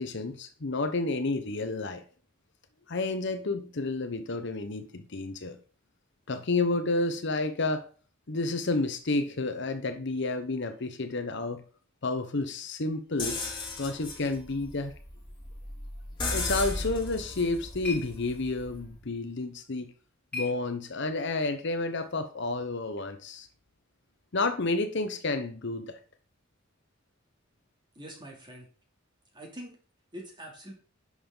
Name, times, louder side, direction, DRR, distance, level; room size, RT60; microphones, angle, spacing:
voice 1, 0.0-2.0 2.9-5.6 6.3-7.8 8.3-11.6 12.0-13.4 13.8-14.9 16.3-19.9 20.3-23.5 24.3-26.0, left 3 dB, 60° left, 1.0 m, -30 dB
sound 1, 13.2-19.0, left 2 dB, 25° left, 2.6 m, -36 dB
sound 2, 17.1-21.3, left 4 dB, 10° left, 4.5 m, -44 dB
voice 2, 27.9-28.7 29.3-29.8 30.1-30.7, equal, 25° right, 2.9 m, -44 dB
10.5 x 6.6 x 3.9 m
head